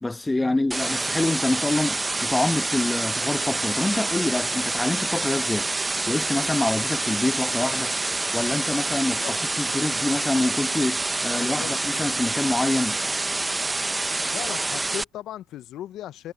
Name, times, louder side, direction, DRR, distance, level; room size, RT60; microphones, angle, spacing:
voice 1, 0.0-13.0, left 2 dB, 10° left, 1.1 m, -26 dB
sound 1, 0.7-15.0, right 2 dB, 15° right, 0.8 m, -27 dB
voice 2, 11.4-12.0 14.3-16.3, left 12 dB, 60° left, 0.6 m, -38 dB
supercardioid pair, 100°, 0 cm